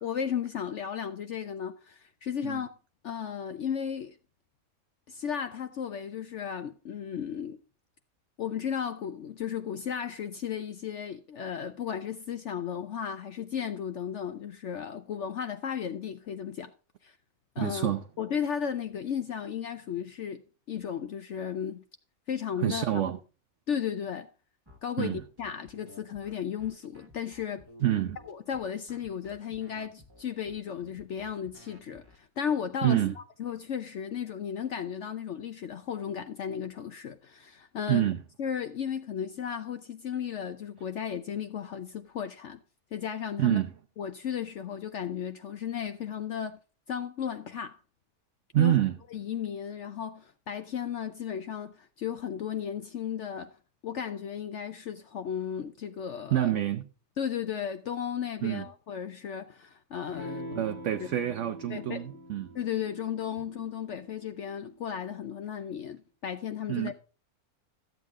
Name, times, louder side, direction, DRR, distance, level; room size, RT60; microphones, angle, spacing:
voice 1, 0.0-2.7 3.0-4.2 5.1-7.6 8.4-16.7 17.0-17.1 17.6-21.8 22.3-22.9 23.7-24.3 24.8-27.6 28.3-38.1 38.4-42.6 42.9-43.6 44.0-46.6 46.9-47.8 48.6-48.8 49.1-53.5 53.8-56.5 57.2-60.6 61.7-62.0 62.5-66.9, left 8 dB, 60° left, 0.9 m, -35 dB
voice 2, 17.6-18.0 22.6-23.2 25.0-25.2 27.8-28.2 32.8-33.2 37.9-38.2 43.4-43.7 48.5-49.0 56.3-56.9 58.4-58.7 60.2-60.3 60.5-62.5 66.7-66.9, right 12 dB, 65° right, 0.9 m, -27 dB
sound 1, 24.7-32.2, left 2 dB, 15° right, 1.3 m, -53 dB
Electric guitar / Strum, 60.1-65.2, equal, 85° left, 2.0 m, -45 dB
13.0 x 8.0 x 3.6 m
omnidirectional pair, 1.5 m